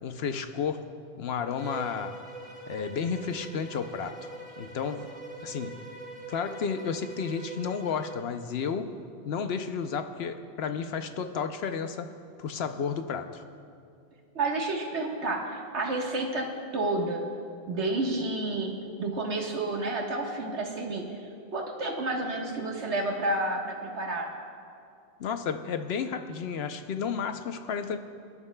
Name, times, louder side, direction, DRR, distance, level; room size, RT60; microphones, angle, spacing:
voice 1, 0.0-0.9 1.2-2.2 2.7-4.2 4.6-5.1 5.4-5.8 6.3-8.9 9.2-12.1 12.4-13.4 25.2-28.0, left 6 dB, 70° left, 8 dB, 0.9 m, -32 dB
Bowed string instrument, 1.6-8.3, right 3 dB, 45° right, 2.2 m, -43 dB
voice 2, 14.3-17.2 17.7-18.7 19.0-21.0 21.5-24.3, right 2 dB, 80° right, 0 dB, 1.7 m, -30 dB
23.5 x 11.0 x 2.2 m, 2.4 s
omnidirectional pair, 1.1 m